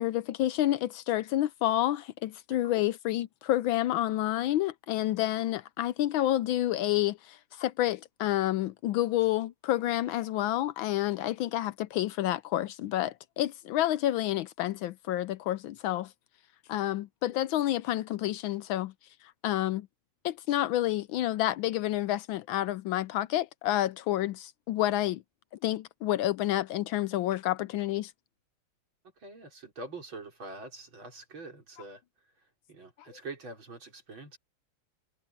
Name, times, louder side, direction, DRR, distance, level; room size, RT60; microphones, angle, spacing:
voice 1, 0.0-16.1 16.7-18.9 19.4-19.9 20.2-25.2 25.6-28.1, left 14 dB, 75° left, 1.3 m, -29 dB
voice 2, 2.5-2.8 29.2-32.0 32.4-34.4, right 3 dB, 65° right, 5.7 m, -45 dB
omnidirectional pair, 2.4 m